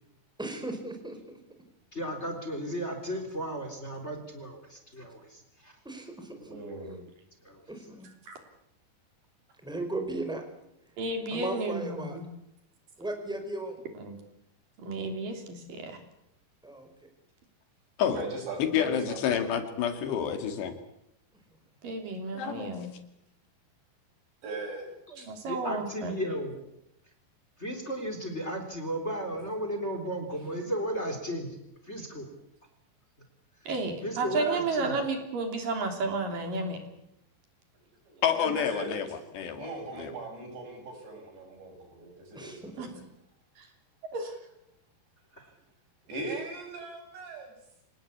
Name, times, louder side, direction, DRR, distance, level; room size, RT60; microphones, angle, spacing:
voice 1, 0.4-1.4 5.8-6.6 7.7-8.1 9.6-10.4 11.3-12.2 13.0-13.8 16.6-17.1 34.2-34.3 42.3-43.0, right 2 dB, ahead, 5 dB, 4.0 m, -37 dB
voice 2, 1.9-5.7 7.4-7.6 25.1-26.6 27.6-31.5 31.8-32.3 34.0-34.9 45.3-45.5, equal, 15° left, 5 dB, 3.5 m, -35 dB
voice 3, 6.4-7.0 18.1-19.5 24.4-25.3 38.1-39.2 39.6-42.9 46.1-47.5, right 2 dB, 85° right, 2 dB, 9.3 m, -39 dB
voice 4, 11.0-12.3 14.0-14.2 14.8-16.0 21.8-22.9 25.2-26.3 33.6-36.8 42.8-42.9 43.6-43.7 44.1-44.4, right 3 dB, 55° right, 5 dB, 4.7 m, -32 dB
voice 5, 18.6-20.7 22.4-22.9 38.2-39.1 39.3-39.7 40.0-40.1, left 8 dB, 80° left, 7 dB, 4.4 m, -29 dB
26.0 x 19.5 x 8.5 m, 0.79 s
omnidirectional pair, 4.9 m